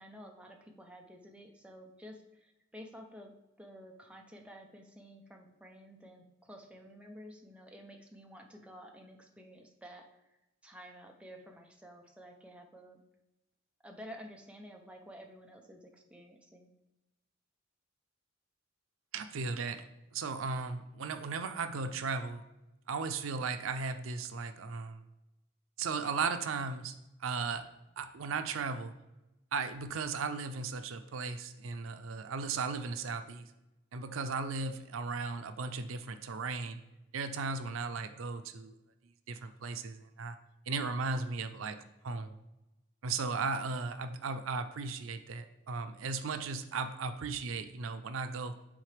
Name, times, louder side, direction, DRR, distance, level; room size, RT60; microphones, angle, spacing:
voice 1, 0.0-3.3 3.6-10.4 10.6-13.0 13.8-16.7, equal, 5° right, 2 dB, 0.6 m, -51 dB
voice 2, 19.1-19.8 20.1-22.4 22.9-25.0 25.8-26.9 27.2-27.7 28.0-28.9 29.5-33.5 33.9-36.8 37.1-38.8 39.3-40.4 40.7-41.8 42.0-42.3 43.0-48.6, right 4 dB, 90° right, 9 dB, 0.5 m, -36 dB
9.5 x 3.8 x 3.3 m, 0.96 s
head